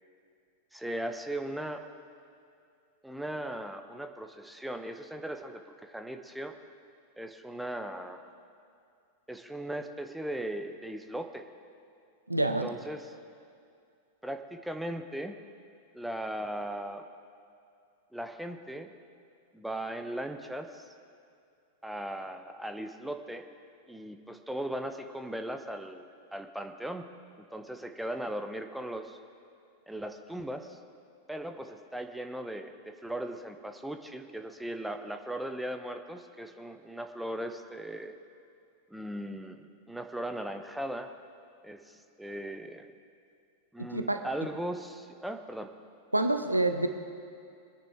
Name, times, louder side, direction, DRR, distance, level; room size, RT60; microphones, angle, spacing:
voice 1, 0.7-1.8 3.0-6.6 7.2-8.2 9.3-11.5 12.4-13.1 14.2-15.3 15.9-17.1 18.1-18.9 19.5-20.9 21.8-23.4 23.9-27.0 27.4-29.2 29.9-30.8 31.3-38.1 38.9-41.1 41.6-42.9 43.7-45.7, right 1 dB, 5° right, 6 dB, 0.9 m, -38 dB
voice 2, 12.3-12.7 43.9-44.2 46.1-46.9, right 2 dB, 85° right, 8 dB, 0.8 m, -27 dB
23.5 x 10.0 x 3.6 m, 2.4 s
figure-of-eight pair, 90°, 0 cm